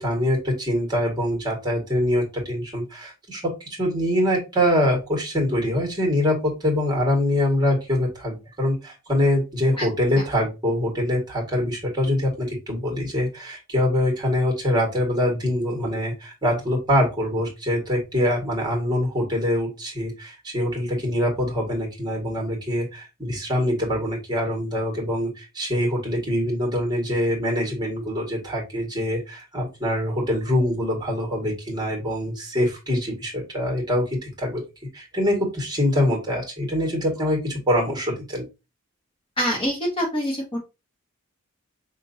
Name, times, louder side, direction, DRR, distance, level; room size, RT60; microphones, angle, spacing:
voice 1, 0.0-3.5 3.8-34.6 34.9-38.4, left 1 dB, 20° right, 1 dB, 1.7 m, -24 dB
voice 2, 39.4-40.6, equal, 25° left, -1 dB, 0.9 m, -25 dB
5.1 x 2.9 x 2.7 m, 0.27 s
head